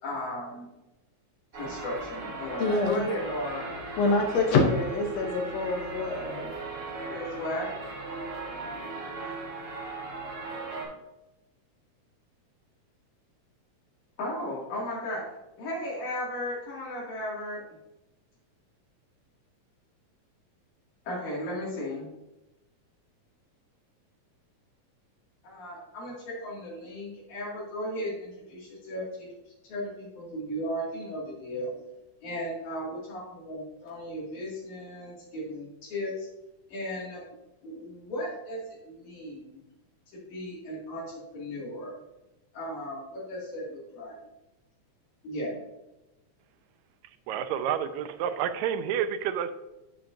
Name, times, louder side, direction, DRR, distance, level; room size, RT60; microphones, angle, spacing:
voice 1, 0.0-0.7 1.5-3.7 7.1-7.7 14.2-15.2 15.6-17.6 21.1-22.1 25.4-29.3 29.7-31.7 32.2-36.3 36.7-37.2 37.6-39.6 40.3-41.1 41.3-42.0 42.5-44.1 45.2-45.6, left 1 dB, 90° left, -7 dB, 3.8 m, -35 dB
sound 1, 1.5-10.9, right 3 dB, 45° right, 3.9 m, -38 dB
voice 2, 2.6-3.0 4.0-6.5, left 3 dB, 70° left, 2 dB, 1.9 m, -26 dB
voice 3, 47.3-49.5, right 9 dB, 80° right, 10 dB, 1.9 m, -29 dB
8.9 x 7.1 x 2.6 m, 0.96 s
omnidirectional pair, 3.3 m